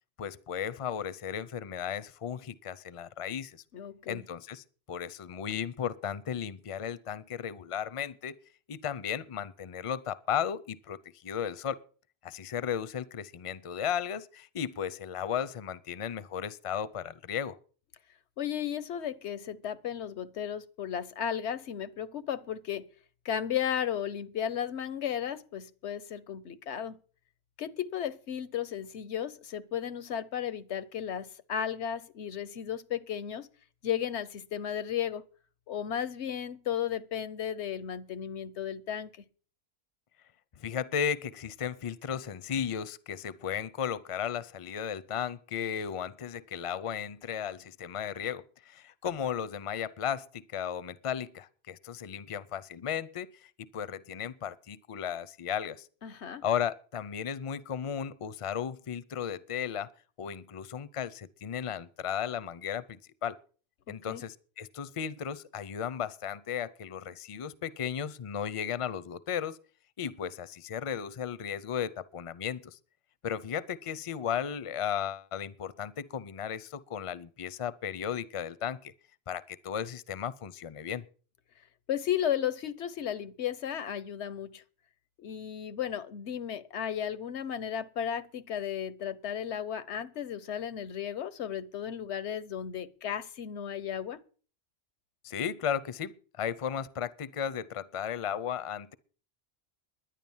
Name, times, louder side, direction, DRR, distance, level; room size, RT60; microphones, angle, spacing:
voice 1, 0.2-3.6 4.1-8.4 8.7-11.8 12.2-17.6 40.6-55.9 56.4-59.9 60.2-63.4 63.9-69.6 70.0-72.8 73.2-78.9 79.3-81.0 95.2-98.9, left 8 dB, 35° left, 0.6 m, -35 dB
voice 2, 3.7-4.2 18.4-22.8 23.2-27.0 27.6-33.5 33.8-35.2 35.7-39.1 56.0-56.4 63.9-64.2 81.9-84.6 85.2-94.2, left 9 dB, 85° left, 1.1 m, -34 dB
11.0 x 10.0 x 7.1 m
omnidirectional pair, 1.1 m